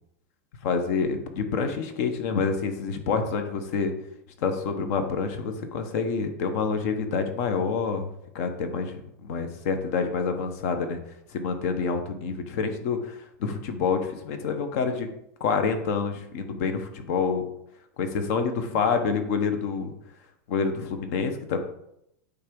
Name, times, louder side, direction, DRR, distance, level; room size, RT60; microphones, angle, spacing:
voice 1, 0.6-3.9 4.4-8.1 8.3-11.0 11.3-15.1 15.4-17.4 18.0-19.9 20.5-21.6, left 5 dB, 60° left, 7 dB, 1.3 m, -27 dB
8.5 x 3.5 x 5.4 m, 0.78 s
supercardioid pair, 145°, 10 cm